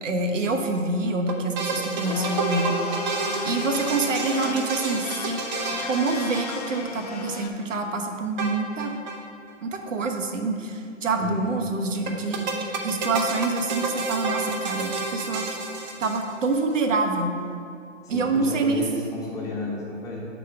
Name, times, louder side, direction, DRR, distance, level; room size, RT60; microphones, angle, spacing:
voice 1, 0.0-2.8 3.4-5.4 5.8-8.9 9.6-15.5 16.0-17.4 18.1-18.9, right 3 dB, 70° right, 4 dB, 1.1 m, -26 dB
sound 1, 1.3-7.1 8.4-9.2 9.5-9.6 9.8-9.9 12.1-16.6, right 3 dB, 35° right, 0.7 m, -30 dB
Domestic sounds home sounds, 1.9-7.5, left 4 dB, 30° left, 0.4 m, -34 dB
voice 2, 11.2-11.6 18.0-20.3, left 2 dB, 10° left, -7 dB, 1.4 m, -32 dB
7.2 x 4.2 x 5.7 m, 2.6 s
hypercardioid pair, 140°, 39 cm